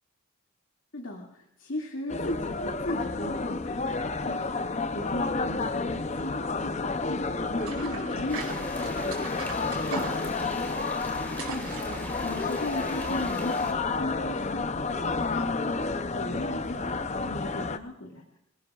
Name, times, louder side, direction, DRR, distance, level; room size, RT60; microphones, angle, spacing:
voice 1, 0.9-18.4, left 1 dB, 65° left, 0 dB, 2.2 m, -38 dB
sound 1, 2.1-17.8, left 3 dB, 30° left, 0.6 m, -30 dB
sound 2, 7.6-12.8, right 4 dB, 85° right, 4.6 m, -39 dB
sound 3, 8.3-13.7, left 1 dB, 10° left, 2.4 m, -41 dB
28.5 x 19.0 x 2.4 m, 0.77 s
head